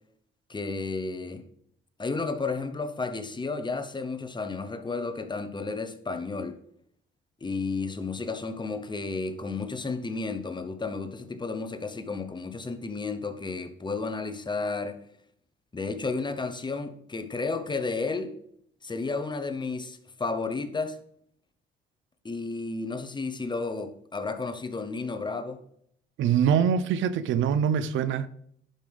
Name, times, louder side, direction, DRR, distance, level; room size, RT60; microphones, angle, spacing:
voice 1, 0.5-1.4 2.0-6.6 7.4-15.0 15.7-18.4 18.8-21.0 22.2-25.6, left 3 dB, 25° left, 0.8 m, -32 dB
voice 2, 26.2-28.3, right 8 dB, 75° right, 0.5 m, -24 dB
11.0 x 5.2 x 3.4 m
cardioid pair, 90°, 20 cm